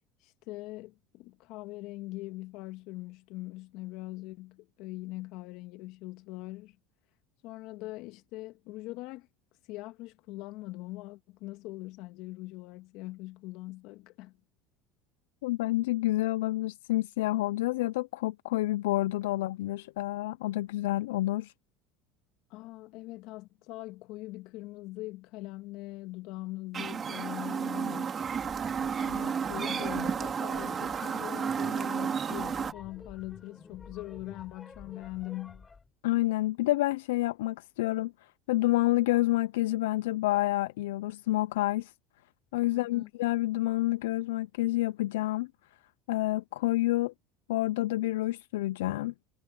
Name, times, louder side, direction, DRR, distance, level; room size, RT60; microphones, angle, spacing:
voice 1, 0.2-6.8 7.4-9.3 9.7-14.4 22.5-28.2 28.8-35.7 42.7-43.1, left 19 dB, 65° left, 2.0 m, -42 dB
voice 2, 15.4-21.5 36.0-38.1 38.5-41.9 42.5-45.5 46.1-47.1 47.5-49.1, left 17 dB, 85° left, 0.4 m, -28 dB
Chirp tweet, 26.7-32.7, right 7 dB, 30° right, 2.6 m, -32 dB
sound 1, 28.1-35.9, left 4 dB, 20° left, 5.2 m, -50 dB
supercardioid pair, 105°, 0 cm